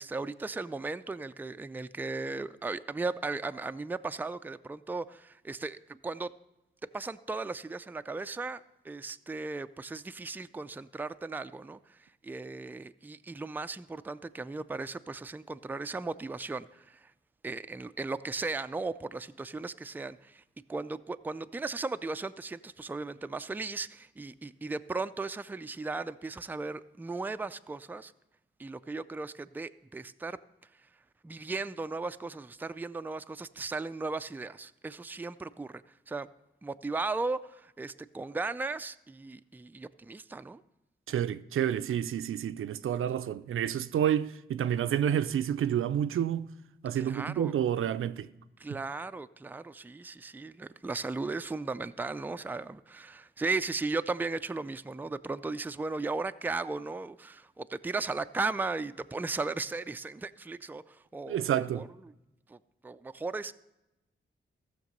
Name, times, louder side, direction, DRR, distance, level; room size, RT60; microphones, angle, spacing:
voice 1, 0.0-6.3 6.9-17.1 17.4-20.4 20.7-28.1 28.6-30.4 31.2-36.3 36.6-40.6 47.0-47.5 48.6-61.4 61.7-61.9 62.5-62.6 62.8-63.5, right 3 dB, 10° right, 0.3 m, -36 dB
voice 2, 41.1-46.5 46.8-48.3 61.3-61.9, right 10 dB, 80° right, 0.4 m, -29 dB
14.5 x 6.6 x 5.3 m
cardioid pair, 75°, 21 cm